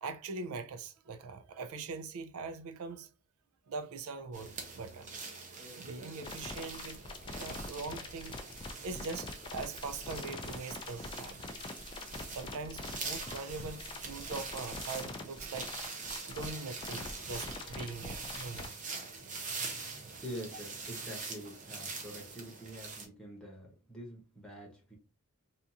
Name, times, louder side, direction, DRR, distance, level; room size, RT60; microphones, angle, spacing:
voice 1, 0.0-3.1 3.7-5.1 5.8-7.0 7.4-8.4 8.8-11.4 12.3-15.7 16.3-18.7, right 4 dB, 90° right, 0.4 m, -42 dB
sound 1, 4.3-23.1, right 4 dB, 35° right, 0.6 m, -44 dB
sound 2, 6.2-18.7, left 3 dB, 25° left, 0.3 m, -43 dB
voice 2, 20.2-25.0, equal, 5° left, 0.8 m, -46 dB
2.8 x 2.4 x 2.4 m
head